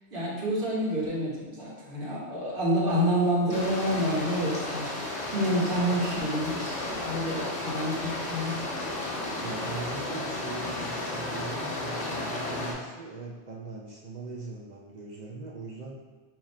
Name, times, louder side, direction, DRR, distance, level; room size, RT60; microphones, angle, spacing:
voice 1, 0.1-8.6, equal, 50° right, -5 dB, 1.3 m, -28 dB
sound 1, 3.5-12.7, left 2 dB, 35° left, 0.9 m, -33 dB
voice 2, 9.4-16.0, right 3 dB, 70° right, -2 dB, 0.4 m, -40 dB
4.4 x 2.5 x 4.1 m, 1.4 s
omnidirectional pair, 1.3 m